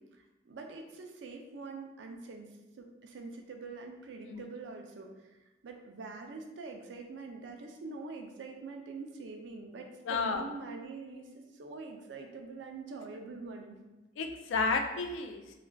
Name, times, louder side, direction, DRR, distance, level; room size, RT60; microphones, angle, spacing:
voice 1, 0.5-5.1 5.6-13.8, right 4 dB, 75° right, 3 dB, 0.4 m, -44 dB
voice 2, 10.0-10.4 14.2-15.6, left 4 dB, 85° left, 5 dB, 0.3 m, -32 dB
2.4 x 2.2 x 3.2 m, 1.1 s
head